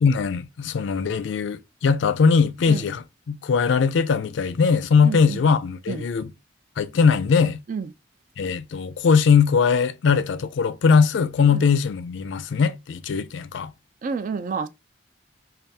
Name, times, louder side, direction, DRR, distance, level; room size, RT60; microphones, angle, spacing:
voice 1, 0.0-6.3 6.8-7.6 8.4-13.7, left 5 dB, 70° left, 0.4 m, -20 dB
voice 2, 5.0-5.4 5.9-6.0 7.7-7.9 11.5-11.6 14.0-14.7, right 5 dB, 45° right, 0.3 m, -29 dB
3.4 x 2.3 x 2.7 m
head